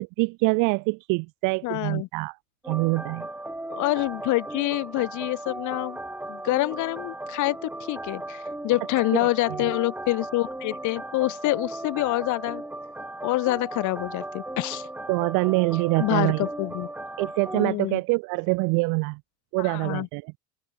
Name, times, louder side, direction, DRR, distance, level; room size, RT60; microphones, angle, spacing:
voice 1, 0.0-2.4 2.6-3.3 9.5-9.7 15.1-16.5 17.2-19.2 19.5-20.3, right 30 dB, 75° right, 1.8 m, -25 dB
voice 2, 1.6-2.1 3.7-6.0 6.3-12.6 13.2-14.9 16.0-16.9 17.5-18.0 19.6-20.1, left 20 dB, 60° left, 5.6 m, -26 dB
sound 1, 2.6-17.7, right 1 dB, 5° right, 3.1 m, -37 dB
open air
cardioid pair, 145°, 33 cm